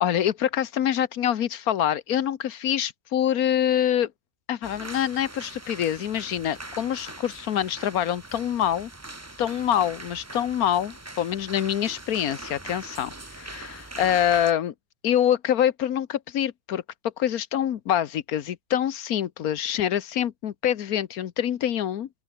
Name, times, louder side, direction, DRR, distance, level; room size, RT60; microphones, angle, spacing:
voice 1, 0.0-4.1 4.5-8.9 9.4-14.7 15.0-22.1, left 10 dB, 85° left, 1.4 m, -25 dB
sound 1, 4.6-14.5, right 2 dB, 10° right, 1.0 m, -42 dB
open air
omnidirectional pair, 1.5 m